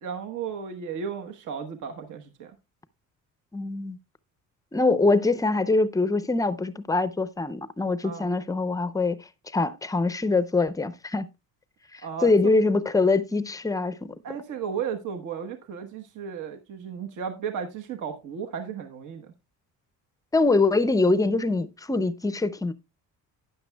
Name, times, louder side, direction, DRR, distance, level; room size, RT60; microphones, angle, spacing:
voice 1, 0.0-2.6 8.0-8.3 12.0-12.3 14.2-19.3, right 7 dB, 60° right, 1.1 m, -34 dB
voice 2, 3.5-4.0 4.7-9.2 9.5-11.3 11.9-14.1 20.3-22.7, left 3 dB, 10° left, 0.5 m, -23 dB
12.5 x 9.2 x 2.2 m
cardioid pair, 125°, 34 cm